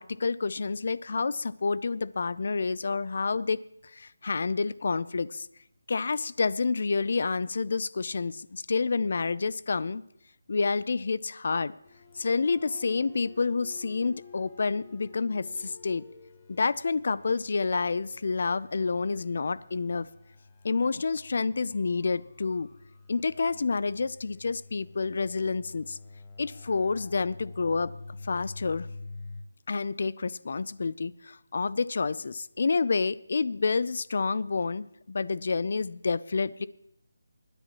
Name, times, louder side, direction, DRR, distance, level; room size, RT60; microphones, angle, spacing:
voice 1, 0.0-3.6 3.9-5.5 5.9-10.0 10.5-11.7 12.2-16.1 16.5-20.1 20.6-22.7 23.1-26.0 26.4-27.9 28.2-28.9 29.7-36.7, left 4 dB, 45° left, 18 dB, 0.4 m, -29 dB
sound 1, 11.8-29.4, left 3 dB, 15° left, 0.8 m, -48 dB
25.0 x 10.0 x 3.0 m, 0.74 s
figure-of-eight pair, 175°, 0 cm